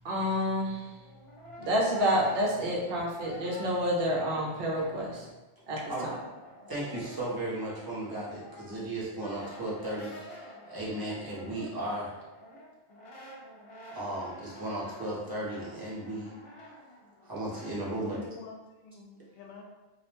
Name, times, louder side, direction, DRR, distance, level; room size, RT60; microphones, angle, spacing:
voice 1, 0.0-1.0 1.6-5.3 5.7-6.2, equal, 65° right, -3 dB, 0.8 m, -29 dB
Brass instrument, 0.9-5.3 5.6-17.8, equal, 45° left, 0.4 m, -49 dB
voice 2, 6.7-12.2 13.9-16.3 17.2-18.2, right 1 dB, 25° right, -7 dB, 0.5 m, -35 dB
voice 3, 17.8-19.6, left 4 dB, 65° left, 0 dB, 0.7 m, -48 dB
2.3 x 2.1 x 2.9 m, 1.1 s
omnidirectional pair, 1.1 m